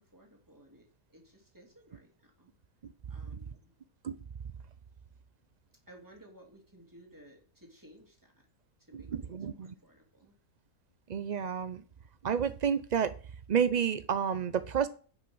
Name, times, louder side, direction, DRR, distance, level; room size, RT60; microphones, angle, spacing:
voice 1, 0.0-2.5 3.1-3.7 5.9-8.3 8.9-10.4, right 1 dB, 15° right, 2.8 m, -57 dB
voice 2, 8.9-9.7 11.1-11.8 12.2-13.2 13.5-14.9, right 7 dB, 65° right, 0.4 m, -30 dB
9.9 x 6.0 x 6.3 m
omnidirectional pair, 1.5 m